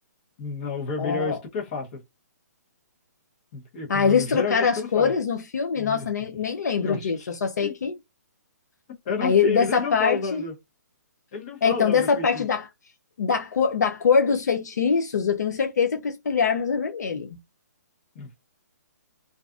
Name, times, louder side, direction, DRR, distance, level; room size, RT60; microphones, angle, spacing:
voice 1, 0.4-1.9 3.5-5.1 5.8-6.1 6.8-7.3 7.6-7.7 9.0-10.5 11.3-12.4 18.1-18.4, left 4 dB, 30° left, 1.0 m, -30 dB
voice 2, 1.0-1.4 3.9-8.0 9.2-10.4 11.6-12.6 13.2-17.4, left 6 dB, 70° left, 0.6 m, -23 dB
2.4 x 2.4 x 2.4 m
hypercardioid pair, 160°, 9 cm